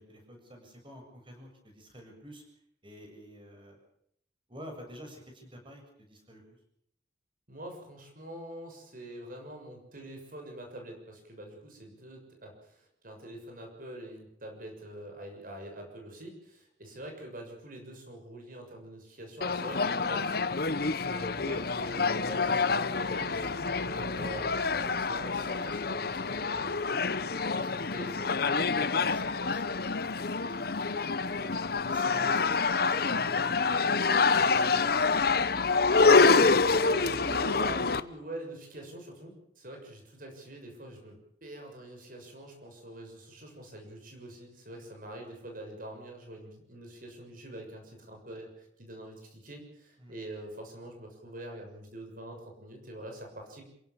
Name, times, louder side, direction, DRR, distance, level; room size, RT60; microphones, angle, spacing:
voice 1, 0.0-2.4 2.8-3.8 4.5-6.4 28.7-31.0 31.3-35.4 50.0-50.1, equal, 30° right, 3 dB, 7.6 m, -49 dB
voice 2, 7.5-20.4 21.0-26.8 27.5-28.5 36.0-41.2 41.4-53.6, right 1 dB, 50° right, 3 dB, 6.8 m, -44 dB
sound 1, 19.4-38.0, left 4 dB, 60° left, 1.0 m, -27 dB
27.5 x 17.0 x 7.1 m, 0.73 s
head